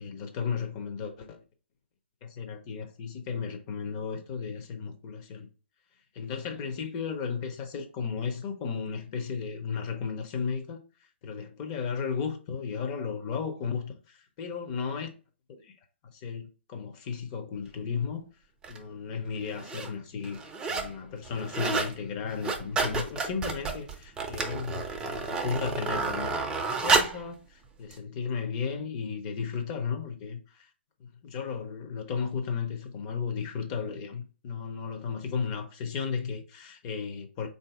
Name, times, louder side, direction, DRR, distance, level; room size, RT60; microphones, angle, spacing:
voice 1, 0.0-1.4 2.2-5.5 6.1-10.8 11.2-15.1 15.6-15.8 16.1-18.2 18.7-26.4 26.8-30.7 31.0-37.5, left 6 dB, 35° left, 0.7 m, -34 dB
sound 1, 18.6-18.8 19.5-19.9 20.2-20.9 21.2-21.9 22.3-27.2 27.9-28.0, right 4 dB, 10° right, 0.5 m, -30 dB
3.9 x 2.7 x 3.4 m
hypercardioid pair, 130°, 6 cm